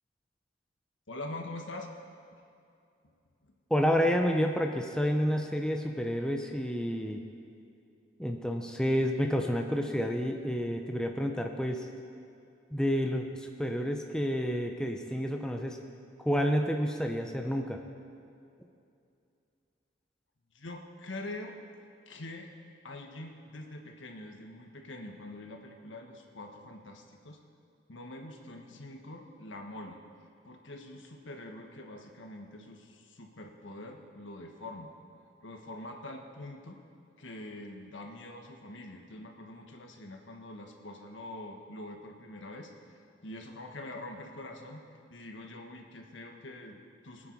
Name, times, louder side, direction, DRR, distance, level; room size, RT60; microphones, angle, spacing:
voice 1, 1.1-1.9 2.3-2.4 3.4-3.5 20.5-21.6 22.1-22.5 22.8-27.4 27.9-30.0 30.4-35.0 35.4-36.8 37.2-44.8 45.1-47.3, left 1 dB, 90° left, 3 dB, 1.5 m, -44 dB
voice 2, 3.7-7.2 8.2-11.9 12.7-15.8 16.2-17.8, equal, 5° left, 3 dB, 0.7 m, -29 dB
22.0 x 9.2 x 4.7 m, 2.6 s
head